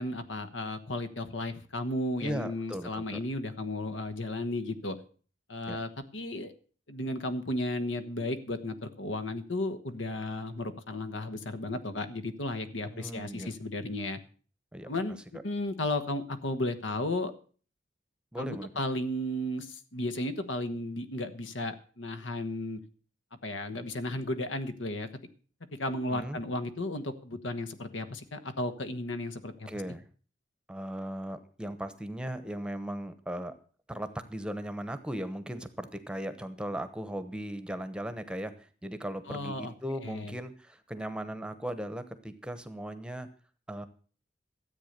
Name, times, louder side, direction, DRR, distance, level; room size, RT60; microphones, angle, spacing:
voice 1, 0.0-5.0 5.5-6.5 6.9-14.2 14.9-15.2 15.4-17.3 18.4-22.8 23.4-25.1 25.7-29.7 39.3-40.3, left 1 dB, 75° left, 10 dB, 1.3 m, -34 dB
voice 2, 2.2-3.2 5.7-5.8 12.9-13.5 14.7-14.9 18.3-18.7 26.1-26.4 29.7-30.1 30.7-33.5 33.9-43.3 43.7-43.9, right 1 dB, 5° right, 11 dB, 1.0 m, -37 dB
13.5 x 8.3 x 6.6 m, 0.41 s
head